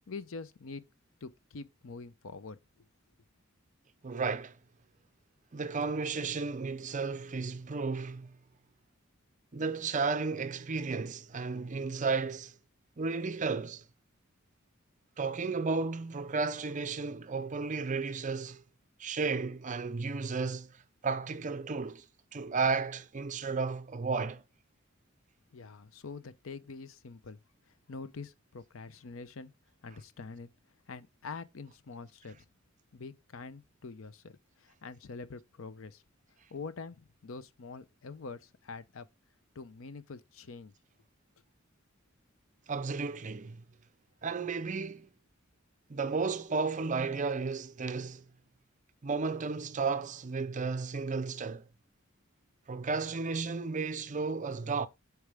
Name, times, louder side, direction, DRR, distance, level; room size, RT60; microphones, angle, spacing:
voice 1, 0.1-0.8 1.2-2.9 25.5-27.4 27.9-29.5 29.8-30.5 30.9-32.5 32.9-36.0 36.5-39.1 39.5-40.7, left 4 dB, 75° left, 0.6 m, -45 dB
voice 2, 4.0-4.6 5.5-8.4 9.5-12.5 13.0-13.8 15.2-18.6 19.0-20.8 21.0-22.0 22.3-24.4 42.7-43.6 44.2-45.1 45.9-48.2 49.0-51.6 52.7-54.9, right 4 dB, 40° right, 0.6 m, -33 dB
8.1 x 4.7 x 3.5 m
head